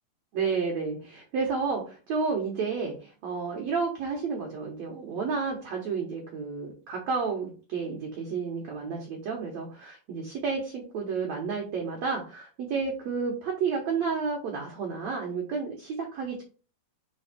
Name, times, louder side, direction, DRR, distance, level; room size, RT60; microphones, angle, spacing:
voice 1, 0.3-16.4, right 5 dB, 65° right, 0 dB, 1.9 m, -31 dB
5.5 x 4.4 x 4.1 m, 0.36 s
omnidirectional pair, 4.5 m